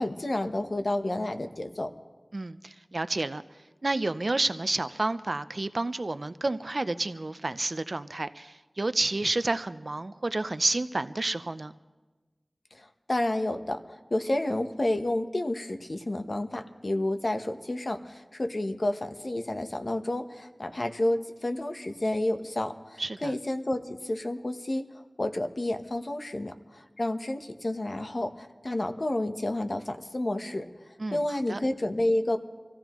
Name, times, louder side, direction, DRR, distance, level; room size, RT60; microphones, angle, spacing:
voice 1, 0.0-1.9 12.7-30.7 31.1-32.4, left 1 dB, 60° left, 6 dB, 1.0 m, -30 dB
voice 2, 2.3-3.4 3.8-11.7 23.0-23.3 31.0-31.6, right 2 dB, 60° right, 12 dB, 0.5 m, -30 dB
26.0 x 15.0 x 3.0 m, 1.2 s
wide cardioid pair, 45°, 0 cm